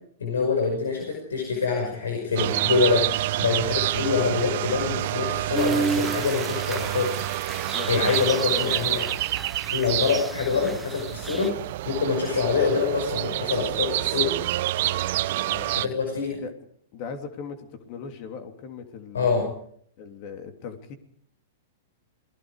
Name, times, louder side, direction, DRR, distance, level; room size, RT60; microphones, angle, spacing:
voice 1, 0.2-3.0 3.4-7.1 7.9-9.0 9.7-11.5 11.9-14.3 15.8-16.4 19.1-19.5, left 5 dB, 85° left, 2 dB, 5.6 m, -25 dB
sound 1, 2.4-15.9, right 15 dB, 60° right, 0.8 m, -28 dB
voice 2, 3.9-4.3 7.7-9.2 10.5-10.8 12.5-12.8 15.4-16.0 16.4-16.5 16.9-19.5 20.0-20.9, left 6 dB, 45° left, 6 dB, 3.2 m, -38 dB
sound 2, 5.5-11.5, right 4 dB, 10° right, 0.9 m, -33 dB
27.5 x 20.0 x 5.0 m, 0.65 s
hypercardioid pair, 115°, 0 cm